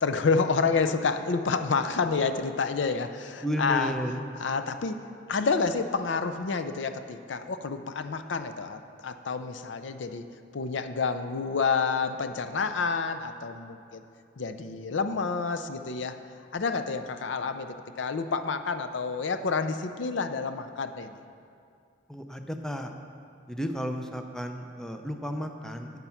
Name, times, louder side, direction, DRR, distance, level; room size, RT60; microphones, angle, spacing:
voice 1, 0.0-3.9 4.4-5.0 5.3-14.0 14.4-16.2 16.5-21.1, left 4 dB, 75° left, 9 dB, 0.5 m, -29 dB
voice 2, 3.4-4.2 22.1-22.9 23.5-25.9, equal, 5° left, 5 dB, 0.5 m, -33 dB
8.9 x 8.2 x 5.7 m, 2.4 s
head